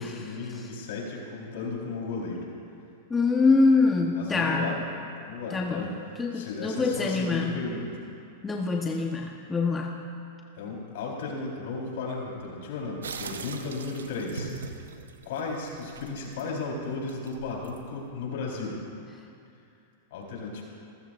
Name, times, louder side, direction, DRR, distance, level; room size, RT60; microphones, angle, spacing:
voice 1, 0.0-2.5 4.1-4.8 5.2-5.9 6.3-7.9 10.6-14.5 15.2-18.8 20.1-20.6, left 3 dB, 65° left, -2 dB, 4.3 m, -34 dB
voice 2, 3.1-4.7 5.5-5.8 6.2-7.6 8.4-9.9, left 3 dB, 15° left, 1 dB, 1.1 m, -25 dB
sound 1, 13.0-18.1, right 5 dB, 85° right, 1.0 m, -42 dB
27.5 x 14.5 x 2.6 m, 2.5 s
hypercardioid pair, 105°, 0 cm